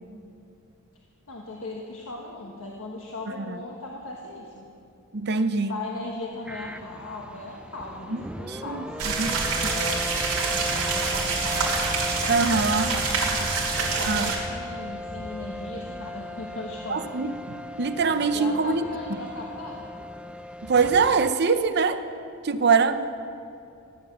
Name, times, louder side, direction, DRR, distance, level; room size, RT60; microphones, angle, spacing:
voice 1, 1.3-4.7 5.4-11.7 12.8-13.0 13.8-17.1 18.3-19.9, left 3 dB, 70° left, -2 dB, 1.4 m, -38 dB
voice 2, 5.1-5.7 8.1-9.4 12.3-12.9 13.3-13.5 14.0-14.3 16.9-18.8 20.6-22.0 22.4-23.1, right 5 dB, 50° right, 11 dB, 0.6 m, -24 dB
sound 1, 6.4-21.3, left 1 dB, 5° right, 0.3 m, -37 dB
sound 2, 9.0-14.4, right 4 dB, 85° right, 3.4 m, -26 dB
15.5 x 10.5 x 7.2 m, 2.5 s
head